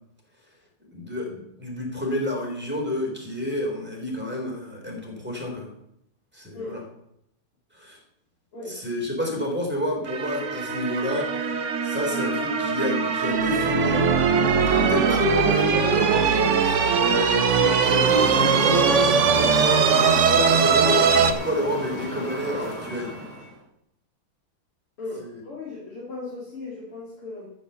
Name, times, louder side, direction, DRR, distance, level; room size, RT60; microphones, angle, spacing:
voice 1, 0.9-5.7 6.3-6.8 7.7-8.0 8.7-14.1 14.7-23.2 25.2-25.4, left 1 dB, 5° right, -1 dB, 3.5 m, -30 dB
sound 1, 10.1-21.3, right 6 dB, 55° right, 0.8 m, -21 dB
sound 2, 18.1-23.6, equal, 20° left, 3.4 m, -33 dB
voice 2, 25.0-27.5, left 3 dB, 75° left, -5 dB, 3.6 m, -37 dB
14.0 x 6.4 x 6.9 m, 0.78 s
omnidirectional pair, 2.4 m